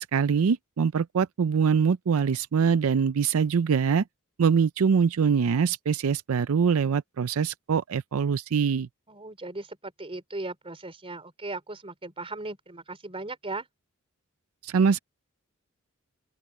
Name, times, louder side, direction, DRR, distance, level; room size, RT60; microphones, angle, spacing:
voice 1, 0.0-4.0 4.4-8.9 14.6-15.0, right 6 dB, 75° right, 0.4 m, -23 dB
voice 2, 9.1-13.7, right 2 dB, 25° right, 4.0 m, -37 dB
open air
head